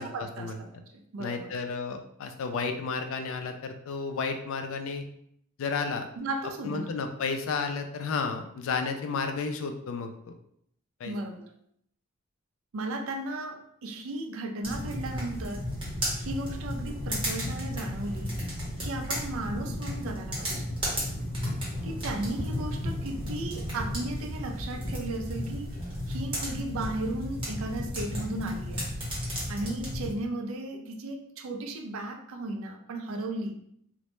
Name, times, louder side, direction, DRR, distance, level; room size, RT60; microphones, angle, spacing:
voice 1, 0.0-1.5 6.2-6.9 11.0-11.4 12.7-15.7 16.2-18.4 18.8-20.7 21.8-25.7 26.1-28.9 29.5-33.7, right 2 dB, 70° right, 4 dB, 0.4 m, -35 dB
voice 2, 1.2-5.0 5.6-6.0 6.6-10.3 11.0-11.1, left 4 dB, 65° left, 6 dB, 0.3 m, -32 dB
sound 1, 14.6-30.1, equal, 25° right, 0.7 m, -33 dB
2.1 x 2.0 x 2.9 m, 0.70 s
head